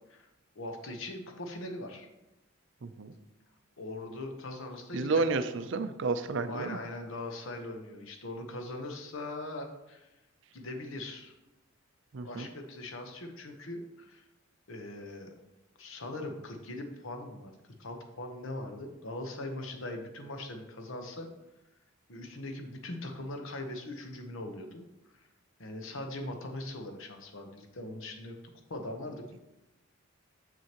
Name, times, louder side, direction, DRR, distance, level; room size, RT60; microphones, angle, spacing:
voice 1, 0.5-2.1 3.8-5.3 5.6-5.7 6.5-10.1 10.5-11.3 12.2-14.3 14.7-15.4 15.8-17.5 17.8-21.3 22.1-24.8 25.1-25.3 25.6-28.4 28.7-29.4, left 2 dB, 70° left, 4 dB, 1.0 m, -41 dB
voice 2, 2.8-3.1 4.9-6.8 12.1-12.5, right 4 dB, 60° right, 10 dB, 0.5 m, -31 dB
6.9 x 6.3 x 2.9 m, 0.98 s
head